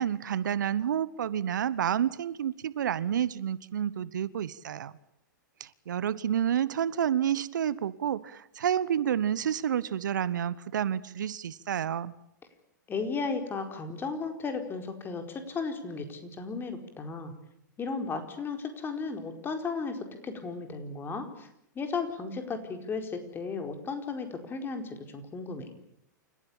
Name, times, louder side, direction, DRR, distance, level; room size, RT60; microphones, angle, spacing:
voice 1, 0.0-4.9 5.6-12.1, right 9 dB, 70° right, 18 dB, 1.1 m, -29 dB
voice 2, 12.9-17.3 17.8-20.0 20.2-21.5 21.7-25.7, left 4 dB, 20° left, 6 dB, 4.6 m, -35 dB
29.0 x 15.5 x 8.7 m, 0.79 s
hypercardioid pair, 110°, 10 cm